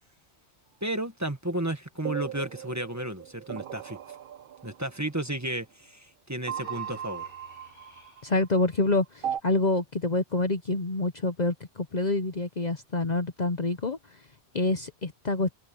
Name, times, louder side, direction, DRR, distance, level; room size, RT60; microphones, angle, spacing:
voice 1, 0.8-4.0 4.6-7.3, right 1 dB, 15° right, 1.6 m, -33 dB
sound 1, 2.0-5.1 6.5-8.4 9.2-9.4, right 10 dB, 60° right, 0.7 m, -37 dB
Human voice, 6.5-8.4, left 2 dB, 70° left, 6.2 m, -51 dB
voice 2, 8.2-14.0 14.5-15.5, left 2 dB, 40° left, 1.0 m, -27 dB
omnidirectional pair, 1.1 m